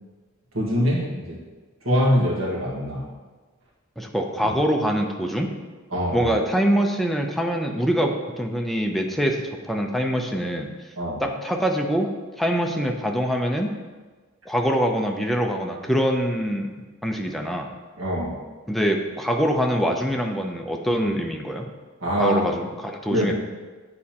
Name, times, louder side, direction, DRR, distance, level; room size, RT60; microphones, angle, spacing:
voice 1, 0.5-1.4 1.8-3.0 5.9-6.3 11.0-11.2 18.0-18.4 22.0-22.4 23.1-23.3, equal, 80° right, -4 dB, 1.7 m, -23 dB
voice 2, 4.0-5.5 6.1-9.4 9.6-10.7 11.2-12.1 12.4-13.7 14.5-16.7 17.0-17.7 18.7-21.7 22.2-23.3, equal, ahead, 1 dB, 0.5 m, -24 dB
8.7 x 4.2 x 2.9 m, 1.4 s
head